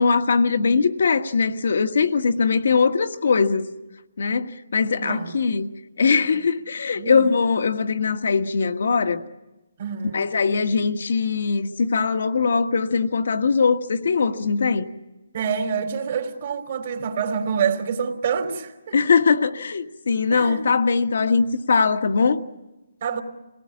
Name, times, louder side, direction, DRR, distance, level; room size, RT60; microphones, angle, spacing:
voice 1, 0.0-3.7 4.2-5.7 6.0-9.2 10.1-14.9 18.9-22.4, left 5 dB, 70° left, 7 dB, 1.6 m, -21 dB
voice 2, 5.0-5.3 6.3-6.4 6.9-7.3 9.8-10.3 15.3-19.0 20.3-20.6 23.0-23.2, right 6 dB, 45° right, 5 dB, 3.2 m, -27 dB
27.0 x 18.5 x 8.7 m, 1.1 s
hypercardioid pair, 160°, 0 cm